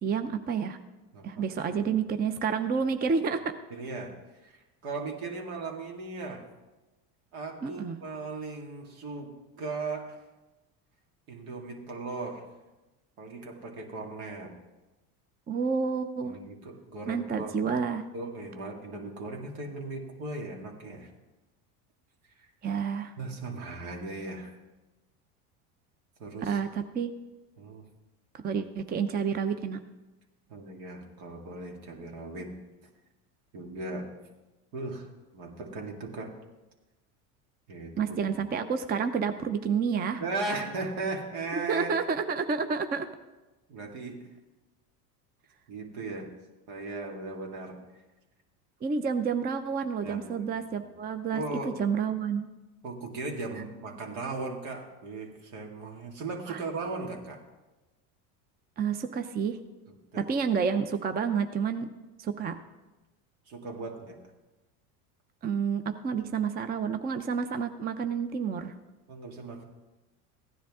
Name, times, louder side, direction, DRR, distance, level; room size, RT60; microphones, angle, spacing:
voice 1, 0.0-0.8 1.2-3.5 7.6-8.0 15.5-16.4 17.1-18.1 22.6-23.1 26.4-27.1 28.3-29.8 38.0-40.2 41.7-43.1 48.8-52.5 56.5-56.6 58.8-59.6 60.2-61.9 62.2-62.6 65.4-68.7, right 6 dB, 20° right, 9 dB, 0.5 m, -29 dB
voice 2, 1.1-1.9 3.7-4.1 4.4-6.4 7.3-10.2 11.3-12.5 13.2-14.5 16.2-17.7 18.1-21.1 22.4-22.5 23.2-24.5 26.2-26.6 27.6-27.8 30.5-32.6 33.5-34.1 34.7-36.3 37.7-38.3 40.2-41.9 43.7-44.3 45.7-46.3 46.7-47.8 50.0-50.5 50.8-50.9 51.3-51.8 52.8-57.4 60.1-60.3 63.5-64.2 69.1-69.6, right 3 dB, 70° right, 2 dB, 2.3 m, -37 dB
15.5 x 10.0 x 3.6 m, 1.1 s
supercardioid pair, 100°, 45 cm